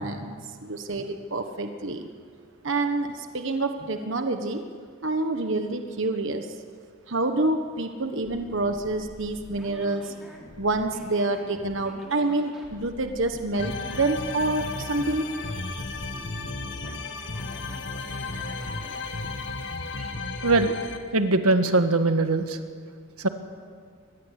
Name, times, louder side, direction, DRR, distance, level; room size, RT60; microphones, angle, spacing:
voice 1, 0.0-2.1 2.6-4.6 5.0-6.5 7.1-10.1 10.6-15.9, right 2 dB, 60° right, 6 dB, 1.3 m, -27 dB
sound 1, 8.2-19.0, equal, ahead, 3.8 m, -47 dB
sound 2, 13.6-21.0, left 3 dB, 55° left, 1.7 m, -34 dB
voice 2, 20.4-20.8 21.1-22.6 23.2-23.3, right 3 dB, 85° right, 8 dB, 1.6 m, -21 dB
24.0 x 20.0 x 8.3 m, 2.1 s
head